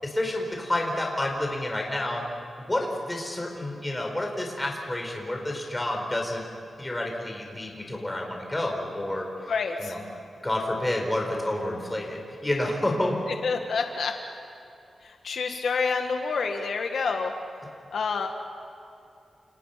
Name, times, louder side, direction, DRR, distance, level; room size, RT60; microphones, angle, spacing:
voice 1, 0.0-2.2 2.6-6.4 6.8-9.5 9.8-10.0 10.4-13.3, left 1 dB, 10° left, 1 dB, 4.5 m, -29 dB
voice 2, 9.5-9.9 13.4-14.1 15.0-17.3 17.9-18.3, left 5 dB, 75° left, 4 dB, 1.8 m, -28 dB
29.0 x 29.0 x 5.9 m, 2.7 s
wide cardioid pair, 170°, 0 cm